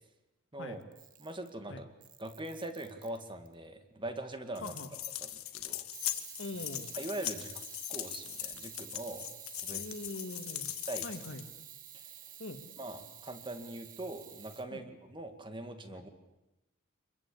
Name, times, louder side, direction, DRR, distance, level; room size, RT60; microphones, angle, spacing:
Camera, 0.8-1.6 2.0-3.5 5.9-14.6, right 11 dB, 40° right, 1.6 m, -50 dB
voice 1, 1.2-1.9 2.2-4.7 5.5-5.8 6.9-7.6 7.9-9.3 9.6-9.8 10.9-11.1 11.9-12.1 12.8-16.1, right 1 dB, 25° right, 7 dB, 2.0 m, -42 dB
sound 1, 4.5-11.5, left 14 dB, 85° left, 1.6 m, -40 dB
voice 2, 4.6-4.9 6.4-6.9 9.7-10.7 11.0-11.4 12.4-12.6 14.7-14.9 15.9-16.0, left 2 dB, 60° left, 7 dB, 2.3 m, -42 dB
26.0 x 22.0 x 8.6 m, 0.99 s
head